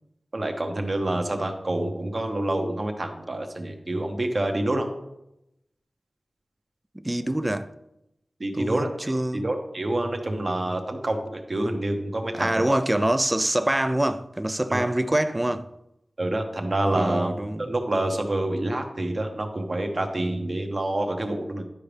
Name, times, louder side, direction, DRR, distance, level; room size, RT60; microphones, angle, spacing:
voice 1, 0.3-4.9 8.4-8.9 9.3-12.8 14.7-14.9 16.2-17.3 17.7-21.6, right 1 dB, 45° right, 1.1 m, -27 dB
voice 2, 6.9-7.7 8.5-9.5 12.3-15.7 16.9-17.7, right 1 dB, 15° right, 0.4 m, -25 dB
11.5 x 5.0 x 3.4 m
wide cardioid pair, 75°, 0 cm